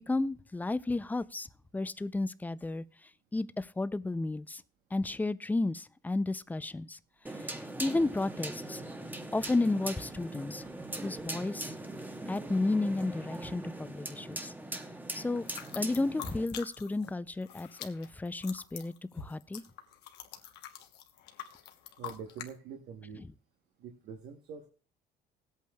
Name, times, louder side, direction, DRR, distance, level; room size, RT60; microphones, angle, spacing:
voice 1, 0.1-1.5 1.7-2.8 3.3-4.6 4.9-7.0 7.4-8.8 9.3-10.6 11.0-11.7 12.3-14.5 15.1-15.5 15.8-19.6, left 2 dB, 10° left, 0.4 m, -32 dB
sound 1, 7.3-16.5, right 1 dB, 10° right, 0.9 m, -41 dB
sound 2, 15.4-17.1 17.3-22.5, left 10 dB, 80° left, 1.0 m, -45 dB
voice 2, 22.0-23.3 23.8-24.7, right 6 dB, 75° right, 1.1 m, -45 dB
19.5 x 8.4 x 2.3 m
cardioid pair, 110°, 17 cm